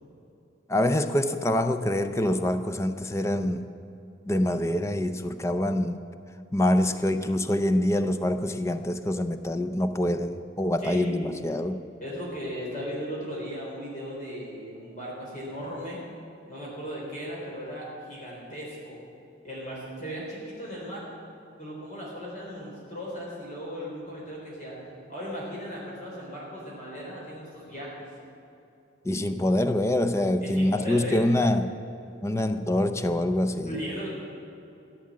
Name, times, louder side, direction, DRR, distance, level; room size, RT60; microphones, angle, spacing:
voice 1, 0.7-3.7 4.3-6.0 6.5-11.8 29.0-31.7 32.2-33.8, left 1 dB, 15° left, 9 dB, 0.5 m, -25 dB
voice 2, 10.8-11.3 12.0-16.0 16.5-19.0 19.4-21.1 21.6-24.8 25.1-27.9 30.4-31.3 33.6-34.1, equal, 40° left, -5 dB, 3.9 m, -37 dB
15.0 x 8.5 x 8.5 m, 2.8 s
head